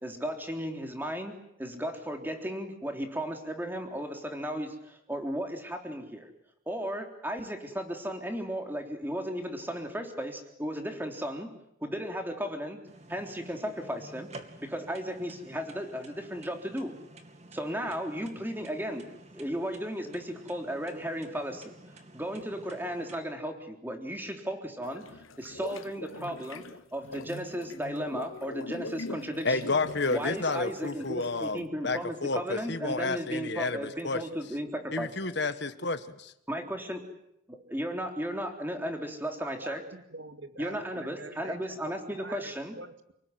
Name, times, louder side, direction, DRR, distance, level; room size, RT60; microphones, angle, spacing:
voice 1, 0.0-6.3 6.7-11.5 11.8-12.8 13.1-14.3 14.6-16.9 17.5-19.1 19.3-21.8 22.1-29.7 30.1-35.1 36.5-37.0 37.5-39.8 40.6-42.8, equal, 10° right, 4 dB, 3.6 m, -35 dB
sound 1, 12.9-23.2, right 2 dB, 30° right, 2.6 m, -51 dB
sound 2, 24.8-31.6, left 2 dB, 80° left, 1.3 m, -42 dB
voice 2, 29.4-34.2 34.9-36.3, left 3 dB, 55° left, 11 dB, 1.6 m, -31 dB
voice 3, 39.4-43.1, right 3 dB, 65° right, 8 dB, 2.3 m, -46 dB
29.5 x 20.0 x 9.5 m, 0.79 s
head